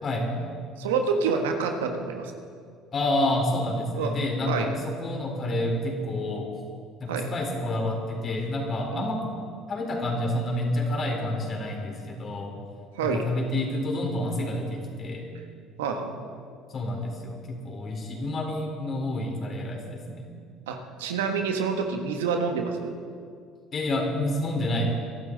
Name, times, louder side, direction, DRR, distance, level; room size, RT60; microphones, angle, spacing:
voice 1, 0.0-0.3 2.9-6.5 7.0-9.2 9.7-12.5 13.0-15.2 16.7-20.3 23.7-25.0, left 1 dB, 40° left, 1 dB, 4.1 m, -28 dB
voice 2, 0.8-2.3 3.9-4.2 4.5-4.7 7.1-7.3 8.9-9.1 12.9-13.3 15.8-16.2 20.7-22.9, right 5 dB, 85° right, 4 dB, 1.4 m, -28 dB
22.5 x 12.5 x 4.0 m, 2.2 s
hypercardioid pair, 65°, 0 cm